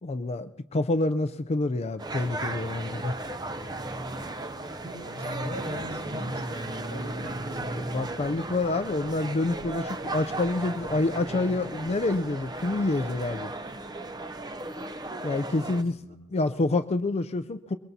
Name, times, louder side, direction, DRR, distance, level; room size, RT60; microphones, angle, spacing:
voice 1, 0.0-3.1 7.7-13.5 15.2-15.9 16.3-17.8, left 2 dB, 30° left, 9 dB, 0.5 m, -27 dB
sound 1, 2.0-15.8, right 2 dB, 20° right, 0.6 m, -35 dB
voice 2, 4.8-7.9 15.3-16.2, equal, 40° right, 0 dB, 6.1 m, -40 dB
23.5 x 22.0 x 2.8 m, 0.99 s
head